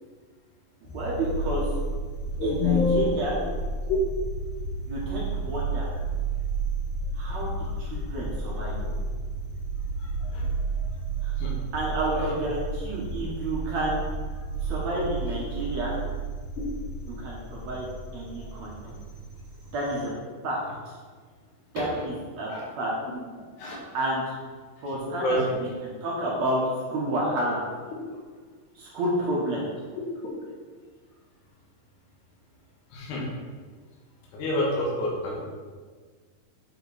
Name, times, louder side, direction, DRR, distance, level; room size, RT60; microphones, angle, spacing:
sound 1, 0.8-20.1, right 3 dB, 60° left, 1.5 m, -32 dB
voice 1, 0.8-1.7 2.4-3.3 4.9-5.9 7.2-8.7 11.2-11.3 11.7-14.1 14.6-16.0 17.2-17.9 18.1-18.7 19.7-20.1 20.4-20.6 21.7-22.5 22.8-22.9 23.9-24.3 24.8-26.6 26.9-27.6 28.8-29.7, right 1 dB, 65° right, -5 dB, 1.8 m, -30 dB
voice 2, 2.4-3.3 3.9-4.0 7.3-7.4 8.8-8.9 10.0-10.5 10.8-10.9 11.4-11.5 12.1-12.3 16.6-16.7 21.8-21.9 22.5-22.7 23.6-23.8 24.9-25.6 32.9-33.3 34.3-35.4, left 2 dB, 85° left, -3 dB, 3.7 m, -28 dB
8.5 x 5.1 x 4.1 m, 1.5 s
omnidirectional pair, 4.6 m